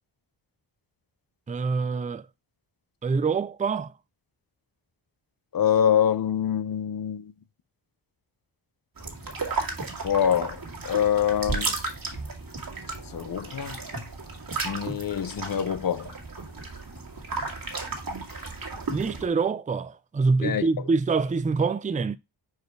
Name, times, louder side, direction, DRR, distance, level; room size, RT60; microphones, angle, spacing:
voice 1, 1.5-2.2 3.0-3.9 18.9-22.2, right 4 dB, 15° right, 0.4 m, -25 dB
voice 2, 5.5-7.3 10.0-10.6 10.8-11.7 13.1-13.8 14.6-16.1 20.4-20.7, left 9 dB, 45° left, 0.7 m, -25 dB
sound 1, 9.0-19.3, right 3 dB, 45° right, 2.1 m, -34 dB
5.0 x 4.7 x 4.6 m
wide cardioid pair, 85°, 49 cm